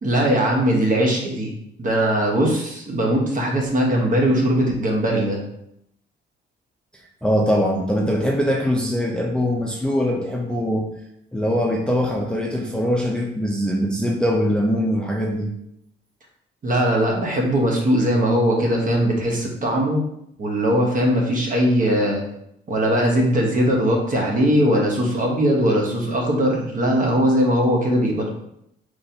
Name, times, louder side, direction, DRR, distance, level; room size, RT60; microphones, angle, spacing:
voice 1, 0.0-1.5 1.8-5.4 16.6-20.0 20.4-22.2 22.7-28.3, equal, 40° right, 0 dB, 1.0 m, -20 dB
voice 2, 7.2-10.9 11.3-15.5, equal, 5° left, -1 dB, 0.5 m, -22 dB
4.1 x 3.1 x 2.7 m, 0.77 s
cardioid pair, 90°, 20 cm